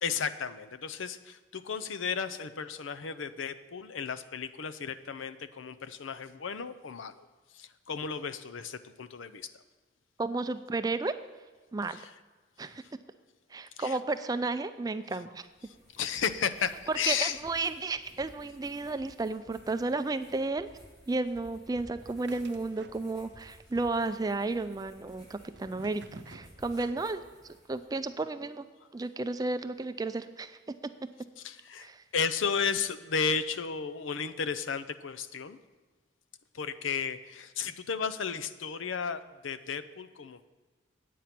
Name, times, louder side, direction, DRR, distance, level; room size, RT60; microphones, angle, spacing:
voice 1, 0.0-7.3 7.5-9.5 11.9-12.1 13.8-14.0 15.7-17.4 31.4-35.6 36.5-40.5, left 6 dB, 85° left, 13 dB, 0.6 m, -34 dB
voice 2, 10.2-11.1 11.7-12.1 12.6-12.8 13.5-15.5 16.9-20.7 21.1-28.7 28.9-30.7 31.8-32.0, right 3 dB, 20° right, 11 dB, 0.3 m, -33 dB
sound 1, 15.4-28.1, equal, 20° left, 3.4 m, -56 dB
sound 2, 22.0-23.4 23.7-24.4 25.1-27.5, right 3 dB, 60° right, 0.7 m, -52 dB
9.2 x 8.4 x 5.9 m, 1.4 s
head